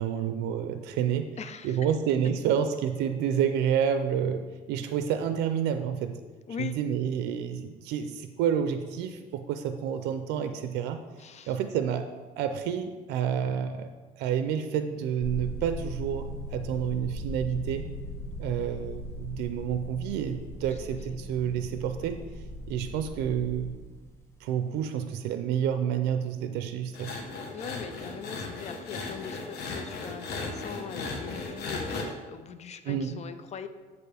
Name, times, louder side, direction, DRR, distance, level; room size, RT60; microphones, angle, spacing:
voice 1, 0.0-1.3 1.6-4.4 4.7-6.1 6.6-11.0 11.5-12.1 12.4-13.9 14.2-17.8 18.4-22.2 22.7-23.8 24.4-27.1 32.9-33.2, right 8 dB, 90° right, 8 dB, 0.5 m, -29 dB
voice 2, 1.4-1.9 6.5-6.7 11.2-11.6 21.1-21.2 27.5-33.7, left 6 dB, 40° left, 10 dB, 0.5 m, -41 dB
sound 1, 15.2-24.1, equal, 15° left, 1.3 m, -39 dB
sound 2, 26.9-32.1, left 3 dB, 75° left, 1.3 m, -36 dB
8.1 x 6.9 x 3.4 m, 1.3 s
cardioid pair, 110°, 17 cm